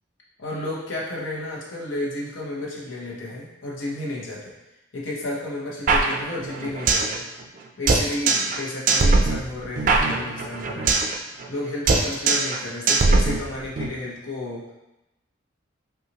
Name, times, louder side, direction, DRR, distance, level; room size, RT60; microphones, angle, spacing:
voice 1, 0.4-4.5 4.9-7.3 7.8-11.0 11.5-14.7, left 2 dB, 80° left, -4 dB, 0.9 m, -32 dB
sound 1, 5.9-7.1 7.4-7.5 7.9-8.6 8.9-11.1 11.4-11.6 11.9-12.6 12.9-13.9, right 3 dB, 45° right, 0.3 m, -20 dB
5.6 x 2.4 x 2.8 m, 0.98 s
head